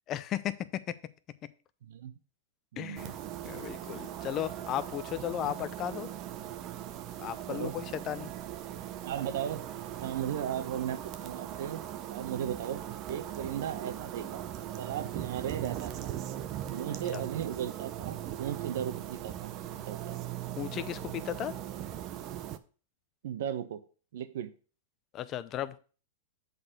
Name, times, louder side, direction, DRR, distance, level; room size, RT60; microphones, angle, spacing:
voice 1, 0.1-0.5 2.8-3.1 3.4-6.1 7.2-8.3 17.1-17.2 20.6-21.5 25.1-25.8, left 11 dB, 30° left, 13 dB, 0.6 m, -35 dB
voice 2, 1.8-2.1 2.7-3.1 5.4-5.5 7.5-7.8 9.0-9.7 10.0-12.8 13.1-14.5 14.8-16.1 16.7-19.5 19.9-20.2 23.2-23.8 24.1-24.5, right 10 dB, 70° right, 11 dB, 1.0 m, -36 dB
sound 1, 3.0-22.6, right 11 dB, 35° right, 0.6 m, -39 dB
7.8 x 4.1 x 6.6 m, 0.38 s
hypercardioid pair, 135°, 0 cm